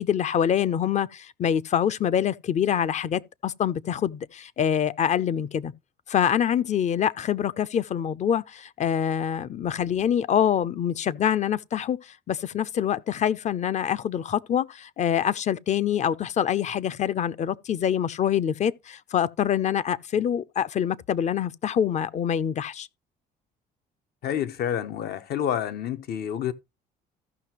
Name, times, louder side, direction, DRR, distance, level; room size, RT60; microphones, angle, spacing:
voice 1, 0.0-5.7 6.1-22.9, left 9 dB, 45° left, 0.6 m, -25 dB
voice 2, 24.2-26.5, left 9 dB, 70° left, 1.1 m, -28 dB
15.0 x 5.9 x 3.0 m
cardioid pair, 110°, 17 cm